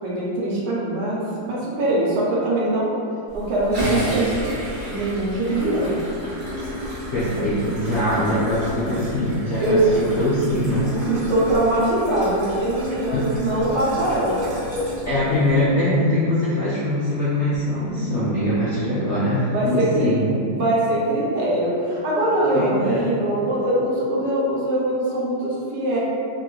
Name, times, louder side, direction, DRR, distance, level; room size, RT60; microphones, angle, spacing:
voice 1, 0.0-2.9 3.3-4.5 4.9-6.0 9.6-9.8 11.0-14.4 17.9-18.5 18.8-18.9 19.5-20.1 20.5-26.0, right 1 dB, 75° right, -6 dB, 1.3 m, -22 dB
sound 1, 3.3-15.6, equal, 45° right, 0.6 m, -31 dB
voice 2, 7.1-10.9 13.1-13.3 15.0-20.4 22.5-23.2, left 1 dB, 70° left, -11 dB, 0.6 m, -22 dB
3.0 x 2.9 x 2.3 m, 2.5 s
omnidirectional pair, 1.9 m